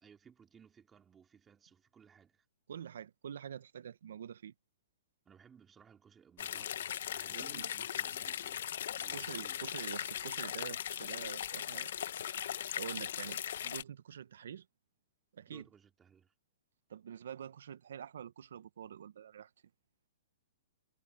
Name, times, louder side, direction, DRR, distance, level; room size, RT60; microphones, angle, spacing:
voice 1, 0.0-2.5 5.2-8.7 9.0-9.6 15.5-16.3, right 7 dB, 15° right, 2.7 m, -60 dB
voice 2, 2.7-4.5 7.3-7.7 9.1-11.9 12.3-12.5 12.8-14.7 15.3-15.7 16.9-19.5, right 8 dB, 75° right, 1.0 m, -46 dB
sound 1, 6.4-13.8, left 10 dB, 65° left, 1.1 m, -39 dB
hypercardioid pair, 155°, 0 cm